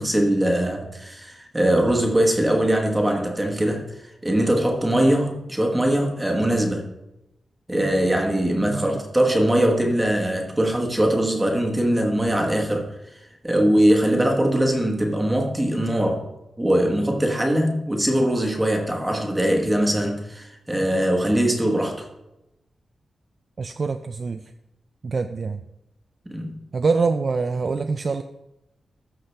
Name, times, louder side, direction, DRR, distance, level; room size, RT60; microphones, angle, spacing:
voice 1, 0.0-6.8 7.7-12.9 13.4-16.3 16.6-22.1 26.3-26.6, right 1 dB, 10° right, 1 dB, 1.1 m, -21 dB
voice 2, 23.6-24.4 25.0-25.6 26.7-28.2, right 4 dB, 40° right, 8 dB, 0.3 m, -24 dB
13.5 x 5.7 x 3.3 m, 0.91 s
wide cardioid pair, 165°, 0 cm